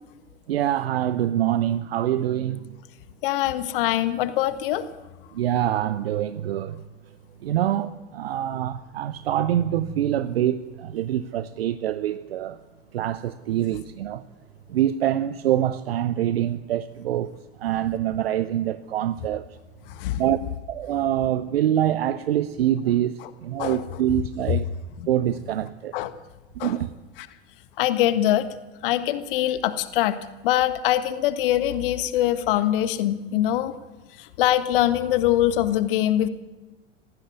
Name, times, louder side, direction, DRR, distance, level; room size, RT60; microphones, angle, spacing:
voice 1, 0.5-2.8 5.3-6.8 7.4-12.6 12.9-14.2 14.7-17.3 17.6-19.5 20.2-20.4 20.7-24.7 25.1-26.0 26.6-26.9, right 11 dB, 65° right, 0.9 m, -25 dB
voice 2, 3.2-4.8 19.9-20.2 23.6-23.8 25.9-26.1 26.6-26.8 27.8-28.5 28.8-30.2 30.4-33.7 34.4-36.3, left 13 dB, 55° left, 1.6 m, -23 dB
19.5 x 16.0 x 9.6 m
figure-of-eight pair, 80°, 33 cm